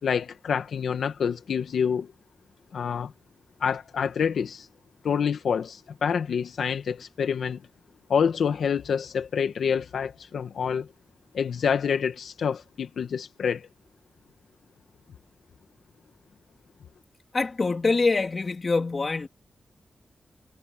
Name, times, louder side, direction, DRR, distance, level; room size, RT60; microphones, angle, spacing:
voice 1, 0.0-2.1 2.7-3.1 3.6-4.7 5.0-7.6 8.1-10.9 11.3-13.7, left 7 dB, 85° left, 1.4 m, -27 dB
voice 2, 17.3-19.3, left 3 dB, 30° left, 3.4 m, -24 dB
wide cardioid pair, 170°, 0 cm